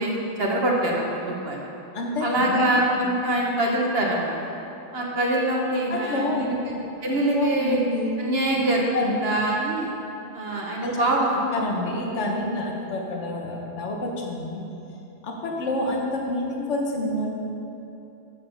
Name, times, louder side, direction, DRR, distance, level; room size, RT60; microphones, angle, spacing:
voice 1, 0.0-1.7 2.2-4.4 4.9-7.8 8.2-9.9 10.3-11.4, right 1 dB, 35° right, -2 dB, 1.1 m, -24 dB
voice 2, 1.9-2.6 5.9-6.5 7.2-8.1 8.9-9.3 10.8-11.1 11.5-14.6 15.2-17.4, left 2 dB, 40° left, 0 dB, 1.2 m, -28 dB
8.4 x 7.5 x 5.7 m, 2.8 s
omnidirectional pair, 2.3 m